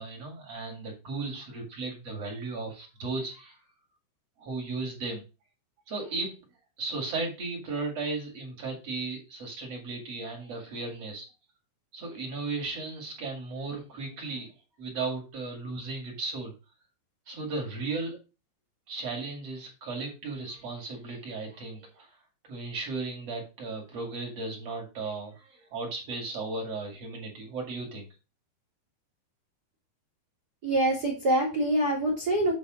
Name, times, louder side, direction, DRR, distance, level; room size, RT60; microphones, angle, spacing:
voice 1, 0.0-3.6 4.4-5.2 5.9-6.4 6.8-11.3 11.9-14.5 14.8-16.5 17.3-18.2 18.9-22.1 22.5-28.1, right 3 dB, 40° right, 0 dB, 2.7 m, -35 dB
voice 2, 30.6-32.5, right 1 dB, 70° right, -1 dB, 0.9 m, -25 dB
8.8 x 4.0 x 6.1 m, 0.30 s
omnidirectional pair, 5.2 m